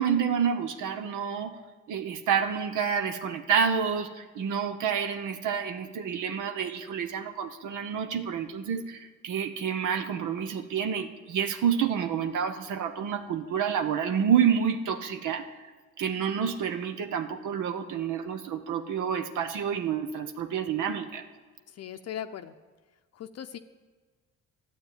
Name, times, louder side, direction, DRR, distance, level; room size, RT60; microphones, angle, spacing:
voice 1, 0.0-1.5 1.9-15.6 16.0-21.2, right 7 dB, 80° right, 8 dB, 0.9 m, -28 dB
voice 2, 21.7-22.5 23.1-23.6, left 10 dB, 55° left, 8 dB, 0.6 m, -38 dB
11.5 x 7.9 x 9.0 m, 1.4 s
cardioid pair, 90°, 30 cm